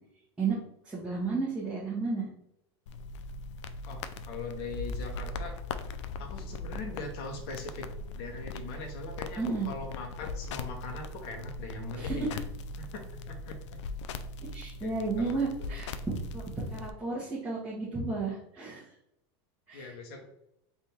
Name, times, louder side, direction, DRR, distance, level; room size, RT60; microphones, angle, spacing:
voice 1, 0.8-2.3 9.4-9.7 12.0-12.2 14.5-18.9 19.7-19.9, right 4 dB, 5° right, -9 dB, 1.0 m, -33 dB
sound 1, 2.9-16.9, left 2 dB, 90° left, 0.4 m, -40 dB
voice 2, 3.9-5.5 6.2-7.9 8.1-12.4 12.8-13.0 13.3-13.8 14.8-15.4 19.7-20.2, left 3 dB, 60° left, 2 dB, 0.9 m, -41 dB
3.5 x 2.5 x 4.3 m, 0.79 s
supercardioid pair, 140°, 15 cm